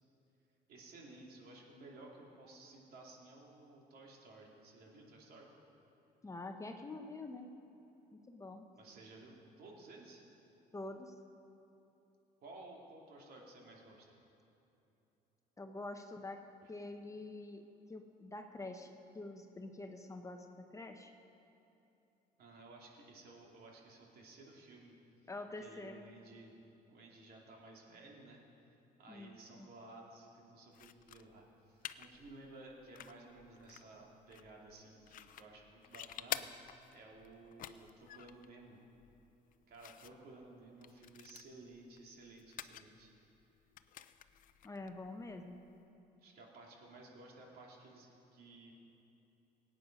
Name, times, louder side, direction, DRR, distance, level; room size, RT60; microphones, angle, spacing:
voice 1, 0.7-5.5 8.7-10.2 12.4-14.1 16.6-16.7 22.4-24.9 25.6-26.6 26.9-28.4 29.0-38.8 39.7-43.1 46.2-48.7, right 2 dB, 65° right, -1 dB, 2.7 m, -55 dB
voice 2, 6.2-7.5 8.1-8.7 10.7-11.1 15.6-21.1 25.3-26.0 29.1-29.7 44.6-45.6, left 2 dB, 20° left, 5 dB, 0.8 m, -47 dB
sound 1, 30.7-45.9, left 11 dB, 55° left, 0.5 m, -51 dB
17.5 x 9.1 x 5.3 m, 3.0 s
cardioid pair, 110°, 17 cm